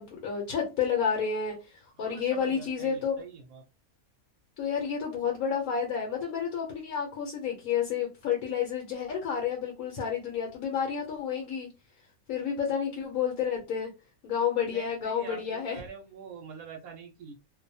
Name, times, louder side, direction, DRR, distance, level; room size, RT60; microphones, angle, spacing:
voice 1, 0.0-3.2 4.6-11.7 12.3-13.9 14.2-15.8, left 7 dB, 80° left, 0 dB, 1.2 m, -30 dB
voice 2, 2.0-3.6 14.7-17.3, right 5 dB, 80° right, 1 dB, 1.1 m, -45 dB
2.6 x 2.2 x 2.6 m, 0.28 s
omnidirectional pair, 1.5 m